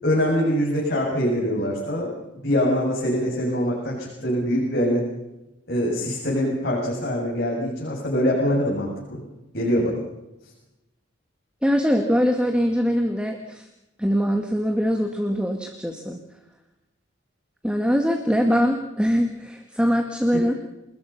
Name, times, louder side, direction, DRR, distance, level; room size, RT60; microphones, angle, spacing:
voice 1, 0.0-2.1 2.4-5.0 5.7-9.2 9.5-10.0, equal, 50° left, -5 dB, 7.4 m, -23 dB
voice 2, 11.6-13.7 14.0-16.2 17.6-20.5, equal, 5° right, 4 dB, 1.7 m, -22 dB
29.0 x 20.0 x 5.8 m, 0.94 s
head